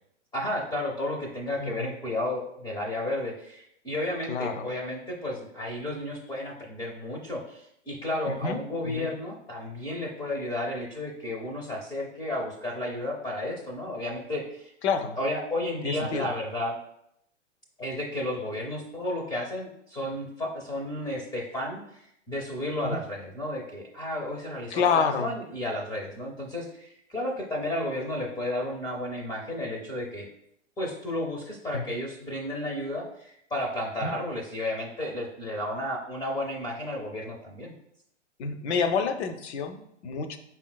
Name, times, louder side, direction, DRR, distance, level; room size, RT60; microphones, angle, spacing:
voice 1, 0.3-14.7 15.2-16.8 17.8-30.3 30.8-37.7, left 1 dB, 10° left, -1 dB, 0.6 m, -32 dB
voice 2, 4.3-4.6 8.3-8.6 8.8-9.1 14.8-15.2 15.8-16.3 22.8-23.0 24.7-25.3 31.7-31.9 34.0-34.2 38.4-40.4, left 5 dB, 60° left, 8 dB, 0.7 m, -28 dB
5.6 x 4.3 x 2.2 m, 0.75 s
hypercardioid pair, 120°, 37 cm